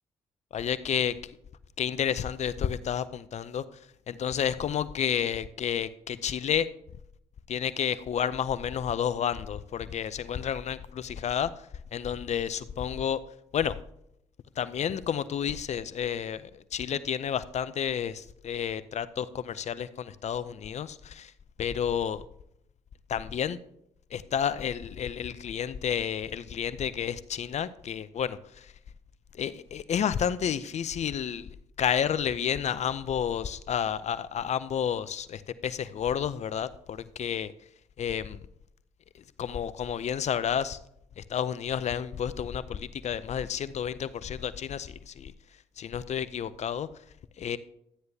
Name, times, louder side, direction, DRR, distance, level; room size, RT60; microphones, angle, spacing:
voice 1, 0.5-1.4 1.8-3.6 4.1-6.7 7.5-11.5 11.9-13.2 13.5-13.8 14.6-21.3 21.6-22.2 23.1-23.6 24.1-28.7 29.3-31.5 31.8-37.5 38.0-38.4 39.4-40.8 41.2-45.3 45.8-46.9 47.4-47.6, left 8 dB, 55° left, 15 dB, 0.6 m, -30 dB
13.0 x 9.4 x 2.8 m, 0.74 s
hypercardioid pair, 50°, 14 cm